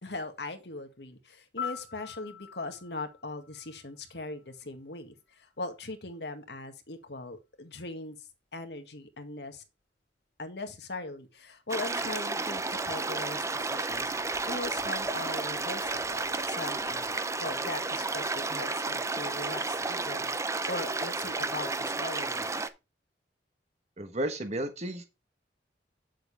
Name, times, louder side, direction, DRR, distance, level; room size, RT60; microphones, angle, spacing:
voice 1, 0.0-8.2 8.5-9.6 10.4-20.3 20.7-22.7, left 2 dB, 70° left, 1.8 m, -40 dB
Piano, 1.6-4.5 12.6-12.8, left 8 dB, 55° left, 3.0 m, -43 dB
sound 1, 11.7-22.7, right 3 dB, 15° right, 0.7 m, -32 dB
voice 2, 24.0-25.1, right 1 dB, 40° right, 1.2 m, -33 dB
8.9 x 7.5 x 3.4 m
head